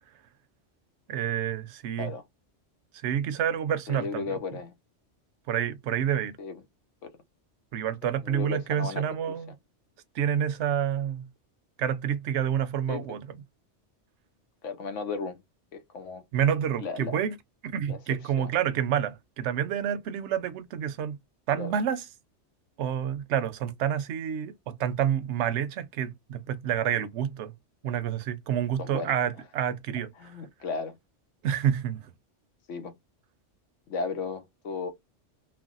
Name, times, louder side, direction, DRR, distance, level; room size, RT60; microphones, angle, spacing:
voice 1, 1.1-2.1 3.0-4.3 5.5-6.4 7.7-9.5 10.1-11.3 11.8-13.4 16.3-17.4 17.6-21.2 21.5-22.0 22.8-27.5 27.8-30.3 31.4-32.1, right 9 dB, 75° right, 0.9 m, -28 dB
voice 2, 3.9-4.7 6.4-6.6 7.0-7.1 8.2-9.4 12.9-13.2 14.6-15.4 15.7-16.2 16.8-17.2 17.9-18.0 18.4-18.5 21.6-21.7 28.8-29.1 30.2-31.0 32.7-32.9 33.9-34.9, left 4 dB, 90° left, 1.0 m, -35 dB
3.3 x 2.1 x 2.4 m
omnidirectional pair, 1.2 m